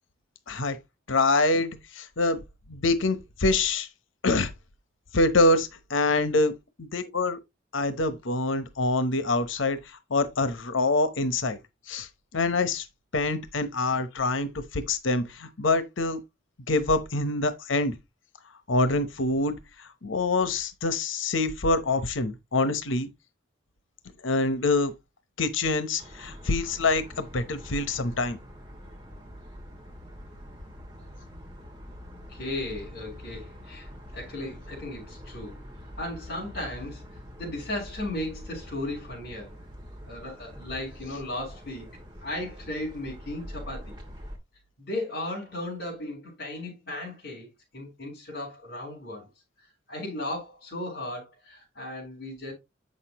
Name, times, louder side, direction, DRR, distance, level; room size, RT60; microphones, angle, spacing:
voice 1, 0.5-0.8 1.1-2.4 2.7-3.9 4.2-4.5 5.1-6.5 6.8-7.4 7.7-11.6 11.9-12.9 13.1-16.2 16.7-18.0 18.7-23.1 24.2-24.9 25.4-28.4, left 2 dB, 85° left, 1.0 m, -25 dB
sound 1, 26.0-44.4, equal, 25° right, 2.7 m, -44 dB
voice 2, 32.3-35.6 36.0-37.0 37.4-39.5 40.1-41.9 42.2-43.9 44.8-47.5 47.7-49.3 49.9-52.5, left 1 dB, 55° left, 4.3 m, -36 dB
8.3 x 6.6 x 3.0 m
head